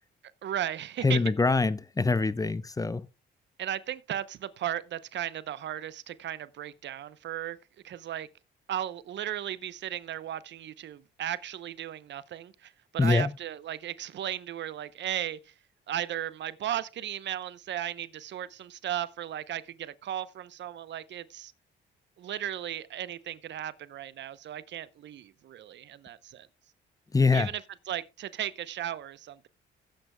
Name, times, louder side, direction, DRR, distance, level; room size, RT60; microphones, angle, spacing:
voice 1, 0.4-1.2 3.6-7.6 7.8-8.3 8.7-15.5 15.9-21.5 22.2-26.5 27.3-27.6 27.9-29.5, right 11 dB, 65° right, 0.8 m, -36 dB
voice 2, 1.0-3.0 13.0-13.3 27.1-27.5, left 4 dB, 15° left, 0.7 m, -24 dB
17.0 x 9.0 x 2.2 m
cardioid pair, 90°, 20 cm